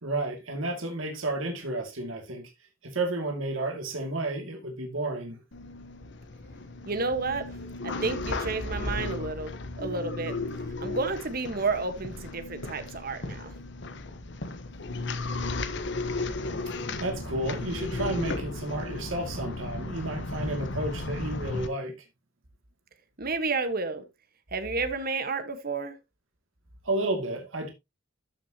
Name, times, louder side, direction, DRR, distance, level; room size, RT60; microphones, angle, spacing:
voice 1, 0.0-2.5 2.8-5.4 17.0-21.9 26.8-27.7, right 2 dB, 90° right, 2.4 m, -31 dB
sound 1, 5.5-21.7, left 2 dB, 60° left, 1.1 m, -35 dB
voice 2, 6.8-7.5 7.8-10.4 10.8-13.5 23.2-24.0 24.5-25.9, right 3 dB, 50° right, 1.4 m, -31 dB
13.0 x 6.3 x 2.9 m
head